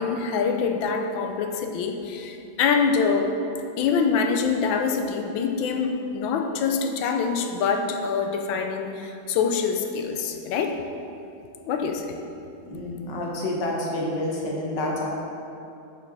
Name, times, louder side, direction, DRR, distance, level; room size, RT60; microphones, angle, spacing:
voice 1, 0.0-3.4 3.8-10.8 11.7-12.2, left 5 dB, 80° left, 5 dB, 1.4 m, -25 dB
voice 2, 12.6-15.1, left 1 dB, 65° left, -2 dB, 1.8 m, -28 dB
7.4 x 6.6 x 4.0 m, 2.7 s
omnidirectional pair, 2.2 m